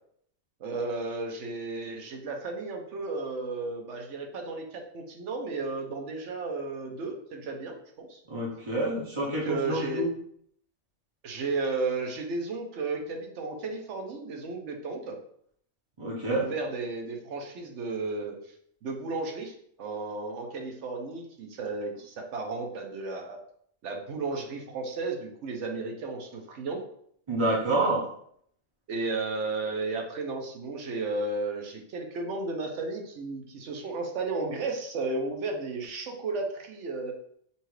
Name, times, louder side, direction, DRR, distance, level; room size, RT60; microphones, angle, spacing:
voice 1, 0.6-8.2 9.2-10.0 11.2-15.2 16.2-18.4 18.8-23.4 23.8-26.8 28.9-37.1, right 3 dB, 70° right, 3 dB, 1.0 m, -33 dB
voice 2, 8.3-10.1 16.0-16.5 27.3-28.0, right 2 dB, 30° right, -5 dB, 0.7 m, -28 dB
5.4 x 2.4 x 3.1 m, 0.66 s
omnidirectional pair, 1.3 m